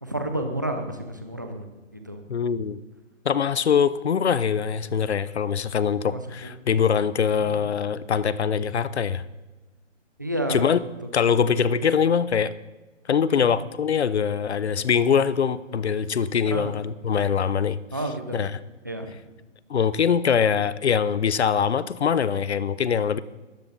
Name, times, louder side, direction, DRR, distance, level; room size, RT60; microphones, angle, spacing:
voice 1, 0.0-1.6 2.1-2.2 6.0-6.5 7.4-7.7 10.2-10.7 11.3-11.4 13.3-13.5 16.4-16.7 17.9-18.4 18.8-19.1, right 1 dB, 15° right, 5 dB, 0.6 m, -30 dB
voice 2, 2.3-2.8 3.2-9.2 10.5-10.8 11.1-12.5 13.1-17.8 18.3-18.6 19.7-23.2, left 7 dB, 60° left, 16 dB, 0.8 m, -23 dB
17.5 x 13.5 x 4.0 m, 1.1 s
hypercardioid pair, 175°, 37 cm